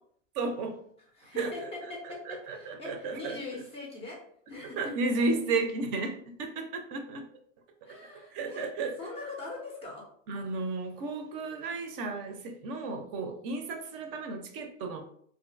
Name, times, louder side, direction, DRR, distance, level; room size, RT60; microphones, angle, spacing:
voice 1, 0.3-0.8 1.3-1.7 2.0-3.4 4.8-7.3 8.0-8.9 10.3-15.0, right 3 dB, 45° right, 5 dB, 0.5 m, -33 dB
voice 2, 1.1-4.2 4.5-4.8 5.0-5.1 7.8-8.7 9.0-10.0, left 3 dB, 15° left, -1 dB, 0.4 m, -41 dB
2.5 x 2.4 x 2.3 m, 0.63 s
hypercardioid pair, 110°, 38 cm